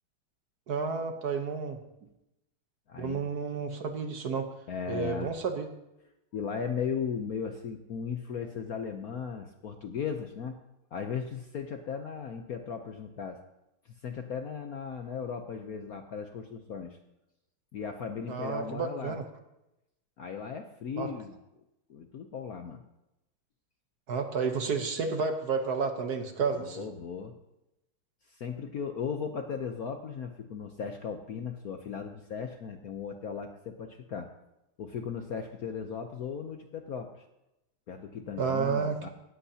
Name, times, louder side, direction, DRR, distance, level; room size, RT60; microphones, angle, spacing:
voice 1, 0.7-1.8 3.0-4.5 4.9-5.7 18.3-19.2 21.0-21.1 24.1-26.9 38.4-39.1, right 5 dB, 55° right, 6 dB, 1.4 m, -31 dB
voice 2, 2.9-3.2 4.7-5.3 6.3-10.6 10.9-13.4 13.8-17.0 17.7-19.2 20.2-21.4 21.9-22.8 26.5-27.3 28.3-34.3 34.8-37.2 37.9-39.1, left 6 dB, 60° left, 5 dB, 1.0 m, -37 dB
17.5 x 13.5 x 2.8 m, 0.91 s
omnidirectional pair, 2.3 m